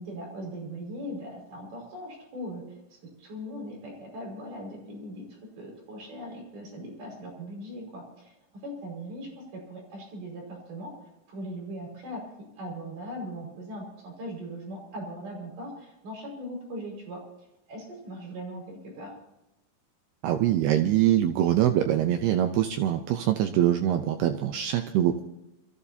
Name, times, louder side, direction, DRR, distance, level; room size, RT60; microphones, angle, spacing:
voice 1, 0.0-2.6 3.2-8.3 8.6-10.9 11.3-12.2 12.6-17.2 17.7-19.1, equal, 55° right, -1 dB, 7.1 m, -39 dB
voice 2, 20.2-25.2, right 11 dB, 75° right, 7 dB, 2.6 m, -24 dB
27.0 x 14.5 x 2.8 m, 0.93 s
omnidirectional pair, 5.2 m